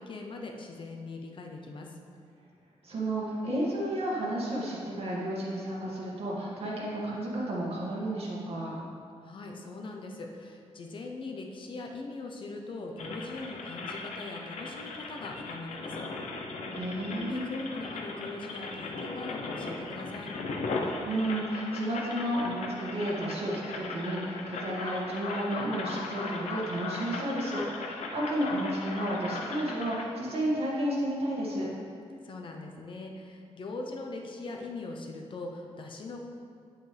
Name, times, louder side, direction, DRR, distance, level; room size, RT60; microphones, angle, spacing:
voice 1, 0.0-2.0 9.2-16.0 17.1-20.3 32.2-36.2, left 3 dB, 45° left, 2 dB, 0.8 m, -41 dB
voice 2, 2.8-8.7 16.7-17.6 21.0-31.7, right 1 dB, 60° right, -5 dB, 2.1 m, -32 dB
sound 1, 13.0-30.1, left 3 dB, 85° left, 0.9 m, -38 dB
8.7 x 8.0 x 3.4 m, 2.3 s
wide cardioid pair, 155°, 11 cm